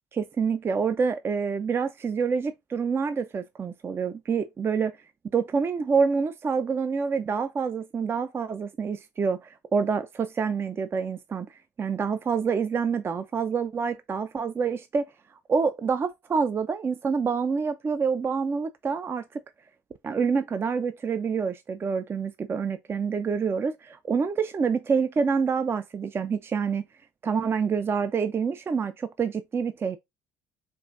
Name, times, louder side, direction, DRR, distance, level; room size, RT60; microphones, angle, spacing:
voice 1, 0.1-4.9 5.3-11.5 11.8-15.1 15.5-19.4 20.0-26.8 27.2-30.0, right 5 dB, 30° right, 0.5 m, -27 dB
5.3 x 2.6 x 2.5 m
hypercardioid pair, 70°, 8 cm